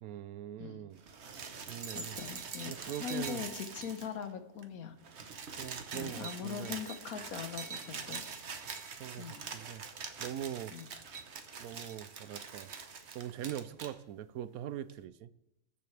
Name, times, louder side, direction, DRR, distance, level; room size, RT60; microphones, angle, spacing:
voice 1, 0.0-1.0 1.7-2.2 2.7-3.4 5.6-6.8 9.0-9.8 10.2-10.8 11.6-12.7 13.1-15.3, right 11 dB, 85° right, 16 dB, 1.1 m, -42 dB
sound 1, 1.0-4.3 4.6-4.7 4.9-13.9 14.9-15.0, right 5 dB, 55° right, 1.3 m, -44 dB
voice 2, 1.9-4.9 5.9-8.2 9.2-9.5 10.7-10.9, left 7 dB, 85° left, 8 dB, 1.6 m, -41 dB
20.5 x 7.7 x 3.3 m, 0.87 s
omnidirectional pair, 1.5 m